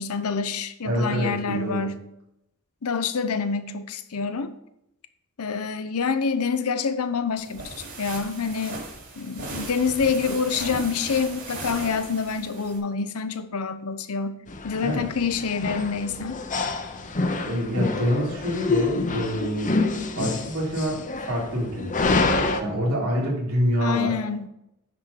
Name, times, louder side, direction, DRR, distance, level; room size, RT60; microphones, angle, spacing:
voice 1, 0.0-2.0 2.8-4.5 5.4-8.8 9.2-16.4 23.8-24.5, left 5 dB, 75° left, 11 dB, 0.7 m, -27 dB
voice 2, 0.8-1.9 14.8-15.0 17.4-19.7 20.1-22.1 22.6-24.1, equal, 70° right, -4 dB, 3.3 m, -26 dB
sound 1, 7.4-12.8, right 2 dB, 55° right, 3.6 m, -37 dB
sound 2, 14.5-22.6, left 3 dB, 35° left, 0.8 m, -27 dB
9.8 x 4.4 x 6.7 m, 0.82 s
head